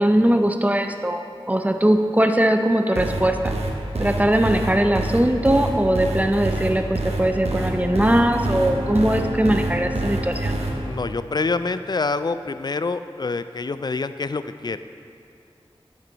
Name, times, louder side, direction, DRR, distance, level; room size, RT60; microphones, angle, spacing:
voice 1, 0.0-3.5 4.0-10.5, right 1 dB, 15° right, 6 dB, 0.6 m, -20 dB
sound 1, 2.9-10.7, right 2 dB, 90° right, 0.9 m, -26 dB
Bowed string instrument, 7.2-12.2, equal, 50° right, 1.2 m, -34 dB
voice 2, 10.8-14.8, left 3 dB, 45° left, 12 dB, 0.3 m, -26 dB
8.8 x 7.5 x 4.0 m, 2.5 s
wide cardioid pair, 40°, 10 cm